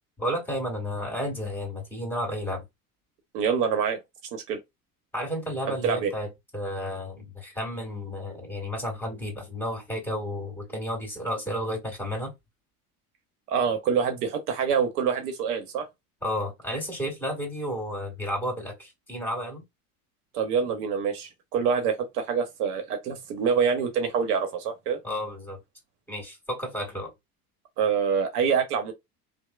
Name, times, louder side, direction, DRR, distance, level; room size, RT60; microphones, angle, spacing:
voice 1, 0.2-2.6 5.1-6.3 6.5-12.3 16.2-19.6 25.0-25.6 26.1-27.1, equal, 5° left, 1.6 m, -32 dB
voice 2, 3.3-4.0 4.3-4.6 5.8-6.1 13.5-15.8 20.3-25.0 27.8-28.9, right 6 dB, 80° right, 0.9 m, -26 dB
3.0 x 2.0 x 2.2 m
hypercardioid pair, 85°, 46 cm